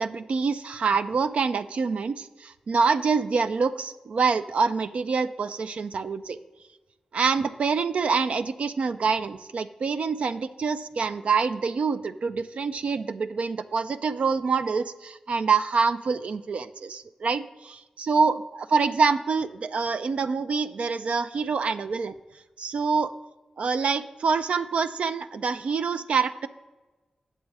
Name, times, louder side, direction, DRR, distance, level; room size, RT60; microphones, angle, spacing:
voice 1, 0.0-6.4 7.1-22.1 22.6-23.1 23.6-26.5, right 5 dB, 70° right, 10 dB, 0.4 m, -26 dB
8.9 x 7.2 x 4.7 m, 1.2 s
wide cardioid pair, 80°, 2 cm